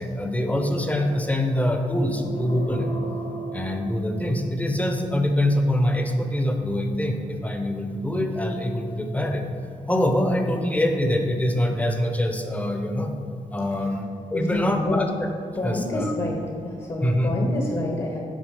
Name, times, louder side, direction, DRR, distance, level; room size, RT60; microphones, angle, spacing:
voice 1, 0.0-2.9 3.5-9.4 9.9-13.1 13.5-15.3 15.6-16.1 17.0-17.3, left 1 dB, 10° left, 4 dB, 0.8 m, -24 dB
sound 1, 2.0-4.7, right 3 dB, 55° left, 1.5 m, -35 dB
voice 2, 14.3-15.0 15.5-18.2, left 1 dB, 40° left, 1 dB, 1.1 m, -28 dB
9.2 x 5.9 x 4.9 m, 2.8 s
wide cardioid pair, 140°, 13 cm